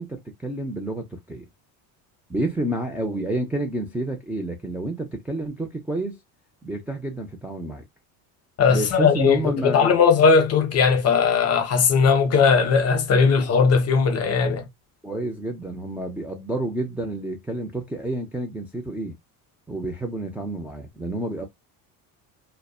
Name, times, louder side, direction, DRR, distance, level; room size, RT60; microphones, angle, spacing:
voice 1, 0.0-1.4 2.3-6.2 6.6-7.8 8.7-10.1 15.0-19.1 19.7-21.4, right 1 dB, 5° right, 0.4 m, -29 dB
voice 2, 8.6-14.6, left 5 dB, 40° left, 0.7 m, -18 dB
2.5 x 2.2 x 2.3 m
cardioid pair, 125°, 39 cm